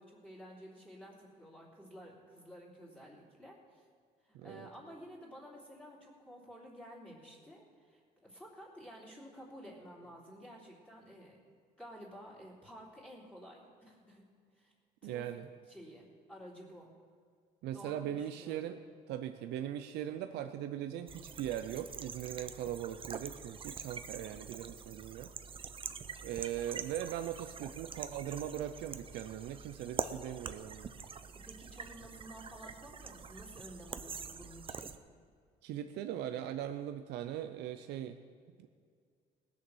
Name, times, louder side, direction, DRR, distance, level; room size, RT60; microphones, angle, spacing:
voice 1, 0.0-3.9 4.2-11.4 11.8-14.2 14.5-14.7 15.0-15.4 15.7-16.9 17.7-18.7 31.3-34.9, equal, 5° left, -5 dB, 3.4 m, -52 dB
voice 2, 4.3-4.7 15.0-15.5 17.6-18.8 19.1-25.3 26.2-30.9 35.6-38.2 38.6-38.7, right 11 dB, 80° right, 7 dB, 0.6 m, -40 dB
sound 1, 21.1-35.0, right 6 dB, 30° right, 0.7 m, -45 dB
19.0 x 7.1 x 6.3 m, 2.1 s
cardioid pair, 110°, 17 cm